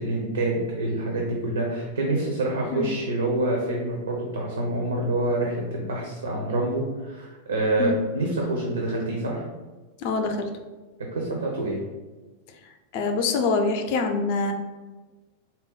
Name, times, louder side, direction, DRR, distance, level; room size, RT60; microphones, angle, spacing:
voice 1, 0.0-9.4 11.1-11.8, right 2 dB, 75° right, 0 dB, 0.6 m, -26 dB
voice 2, 10.0-10.5 12.9-14.5, left 4 dB, 45° left, 5 dB, 0.4 m, -25 dB
3.9 x 2.0 x 3.9 m, 1.3 s
figure-of-eight pair, 90°, 0 cm